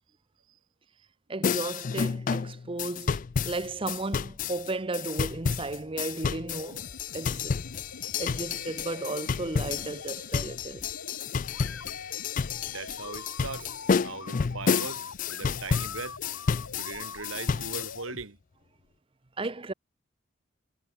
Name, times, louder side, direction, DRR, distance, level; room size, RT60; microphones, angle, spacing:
voice 1, 1.3-6.8 7.1-7.6 8.2-10.9 19.4-19.7, right 2 dB, 25° right, 0.7 m, -34 dB
sound 1, 1.4-18.0, left 5 dB, 40° left, 0.4 m, -30 dB
sound 2, 6.5-18.3, left 4 dB, 75° left, 1.2 m, -45 dB
voice 2, 12.7-13.7 14.0-16.2 16.7-18.4, right 4 dB, 75° right, 1.9 m, -40 dB
head